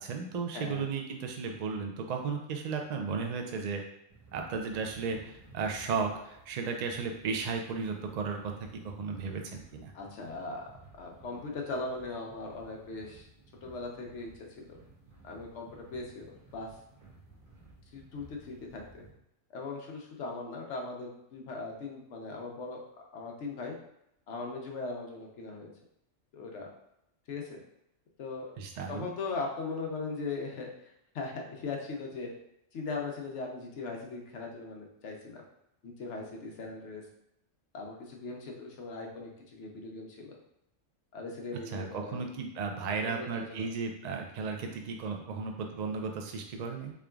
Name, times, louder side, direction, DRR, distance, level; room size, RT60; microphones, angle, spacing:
voice 1, 0.0-3.8 4.3-8.5 8.8-9.9 28.6-29.1 41.7-46.9, right 5 dB, 90° right, 3 dB, 0.3 m, -35 dB
voice 2, 0.5-0.9 9.9-10.6 11.0-13.3 13.6-14.8 15.2-16.7 17.9-19.0 19.5-22.8 23.1-23.8 24.3-25.7 26.3-26.7 27.3-27.6 28.2-28.6 28.9-32.3 32.7-35.4 35.8-37.0 37.7-40.4 41.1-42.3 42.9-43.7, left 3 dB, 65° left, 1 dB, 1.0 m, -39 dB
sound 1, 4.1-19.1, right 3 dB, 45° right, 1.4 m, -56 dB
3.7 x 3.4 x 2.3 m, 0.81 s
omnidirectional pair, 1.3 m